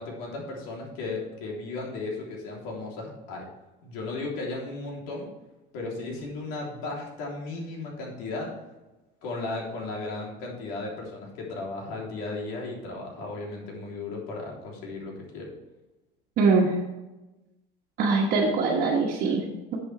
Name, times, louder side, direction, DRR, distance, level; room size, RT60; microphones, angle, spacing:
voice 1, 0.0-3.4 3.8-5.3 5.7-8.5 9.2-15.5, left 3 dB, 75° left, -2 dB, 3.4 m, -35 dB
voice 2, 16.4-16.7 18.0-19.8, right 4 dB, 45° right, -3 dB, 1.5 m, -23 dB
10.5 x 8.0 x 3.4 m, 1.1 s
cardioid pair, 165°, 20 cm